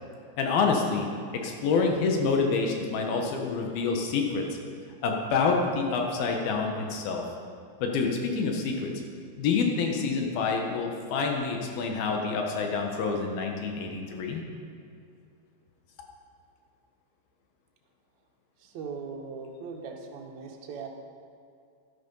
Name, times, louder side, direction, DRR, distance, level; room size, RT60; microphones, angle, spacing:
voice 1, 0.4-1.1 1.3-4.5 5.0-7.2 7.8-8.9 9.4-14.4, left 4 dB, 85° left, 2 dB, 3.2 m, -27 dB
voice 2, 18.6-20.9, right 5 dB, 60° right, 0 dB, 2.3 m, -39 dB
12.0 x 11.5 x 5.5 m, 2.4 s
omnidirectional pair, 4.2 m